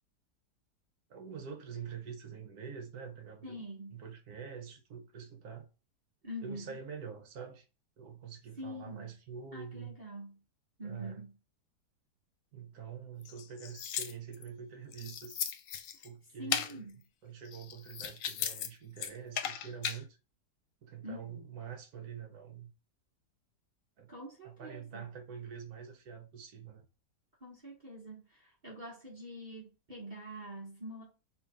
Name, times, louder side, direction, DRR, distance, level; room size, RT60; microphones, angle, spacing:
voice 1, 1.1-3.6 3.9-5.7 6.4-7.6 8.0-10.0 10.8-11.3 12.5-15.4 16.0-16.9 17.2-20.2 20.8-22.7 24.0-24.1 24.4-26.9, right 7 dB, 65° right, 1.3 m, -46 dB
voice 2, 3.4-4.0 6.2-6.7 8.6-9.1 9.5-10.4 10.8-11.3 16.4-17.0 21.0-21.5 24.1-25.1 27.4-31.0, equal, 30° right, 1.0 m, -45 dB
sound 1, 13.2-14.5 14.9-16.1 16.5-16.7 17.4-18.7 19.0-20.0, left 9 dB, 70° left, 0.8 m, -36 dB
3.6 x 3.1 x 4.8 m
omnidirectional pair, 1.8 m